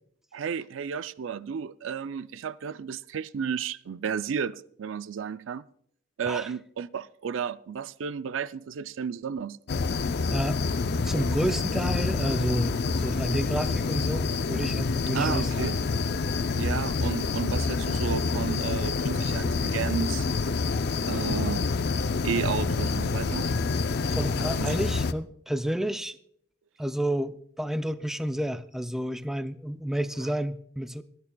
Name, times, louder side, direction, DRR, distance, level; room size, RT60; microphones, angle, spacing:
voice 1, 0.3-5.6 6.2-9.6 15.1-15.8 16.5-20.3 21.1-21.7 22.2-23.5 24.6-24.8, right 6 dB, 75° right, 0.4 m, -32 dB
sound 1, 9.7-25.1, left 4 dB, 55° left, 0.5 m, -27 dB
voice 2, 11.0-15.7 24.1-26.2 26.8-31.0, right 1 dB, ahead, 0.4 m, -30 dB
24.0 x 11.0 x 2.3 m
head